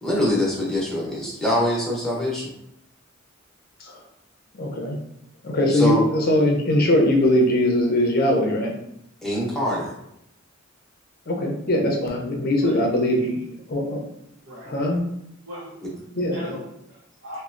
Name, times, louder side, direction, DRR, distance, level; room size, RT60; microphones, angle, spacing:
voice 1, 0.0-2.5 5.7-6.0 9.2-9.9 15.8-15.9, left 1 dB, ahead, -6 dB, 0.8 m, -24 dB
voice 2, 4.5-5.0 5.4-8.7 11.3-13.3 13.7-14.0 14.6-15.0 16.2-16.6, left 1 dB, 50° left, 0 dB, 0.6 m, -21 dB
voice 3, 13.0-13.4 14.4-14.7 15.5-17.4, equal, 65° right, -7 dB, 0.6 m, -40 dB
3.1 x 2.1 x 2.5 m, 0.79 s
head